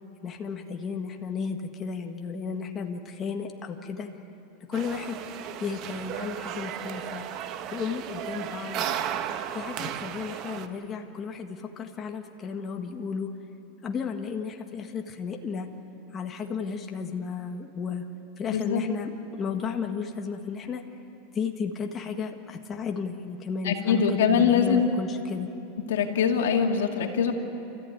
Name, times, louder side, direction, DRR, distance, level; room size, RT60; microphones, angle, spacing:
voice 1, 0.2-4.1 4.6-5.2 5.6-7.2 7.7-8.8 9.5-13.3 13.8-15.7 16.1-18.1 18.4-20.8 21.3-25.5, left 5 dB, 25° left, 3 dB, 1.6 m, -33 dB
sound 1, 4.7-10.7, right 9 dB, 45° right, 1.2 m, -34 dB
voice 2, 18.5-18.8 23.6-24.9 25.9-27.3, left 7 dB, 90° left, 3 dB, 2.3 m, -23 dB
28.5 x 14.5 x 9.5 m, 2.9 s
supercardioid pair, 135°, 0 cm